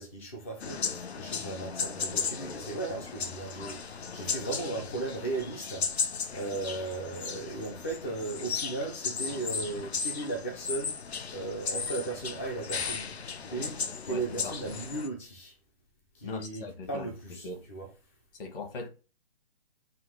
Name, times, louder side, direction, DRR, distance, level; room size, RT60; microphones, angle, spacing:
voice 1, 0.0-15.6 16.1-17.9, right 3 dB, 15° left, 0.3 m, -37 dB
sound 1, 0.6-15.1, left 6 dB, 80° left, 0.7 m, -36 dB
voice 2, 14.1-14.5 16.2-17.1 17.4-17.7 18.3-18.9, left 3 dB, 60° left, 1.3 m, -39 dB
4.0 x 2.3 x 4.0 m
figure-of-eight pair, 135°, 32 cm